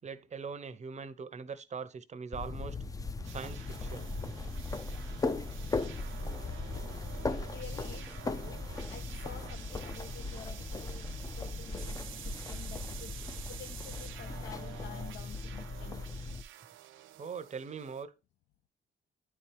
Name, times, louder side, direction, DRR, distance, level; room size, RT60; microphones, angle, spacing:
voice 1, 0.0-2.8 3.2-4.1 17.2-18.1, right 5 dB, 35° right, 0.7 m, -41 dB
sound 1, 2.3-16.4, left 3 dB, 15° left, 0.5 m, -38 dB
sound 2, 3.2-18.0, right 12 dB, 75° right, 0.6 m, -50 dB
voice 2, 7.1-8.6 8.9-11.1 11.3-13.2 13.5-16.2, left 7 dB, 65° left, 0.6 m, -50 dB
9.7 x 4.3 x 3.3 m
cardioid pair, 90°, 20 cm